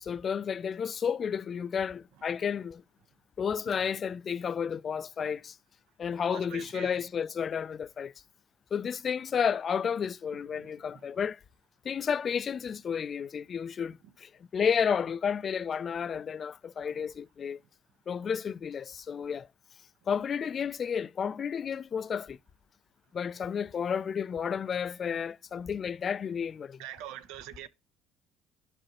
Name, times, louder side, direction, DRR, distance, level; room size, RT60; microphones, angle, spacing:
voice 1, 0.0-2.8 3.4-5.6 6.0-8.1 8.7-11.4 11.8-17.6 18.1-19.5 20.1-22.4 23.1-26.8, left 7 dB, 30° left, 0.3 m, -32 dB
voice 2, 6.3-7.0 10.5-10.7 26.8-27.7, right 11 dB, 85° right, 0.7 m, -43 dB
12.5 x 4.9 x 2.9 m
cardioid pair, 165°, 0 cm